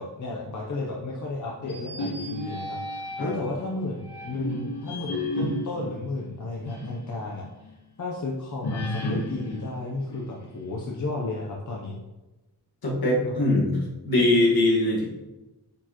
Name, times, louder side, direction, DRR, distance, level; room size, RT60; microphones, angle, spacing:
voice 1, 0.0-7.7 8.0-12.0 13.2-13.3, left 2 dB, 50° left, -2 dB, 0.8 m, -33 dB
sound 1, 1.6-3.5 4.1-7.0 7.4-7.5 8.6-10.7, left 1 dB, 80° left, 1.3 m, -33 dB
voice 2, 12.8-13.7 14.1-15.0, left 1 dB, 65° left, -3 dB, 1.8 m, -21 dB
8.7 x 4.5 x 3.0 m, 1.1 s
wide cardioid pair, 145°, 39 cm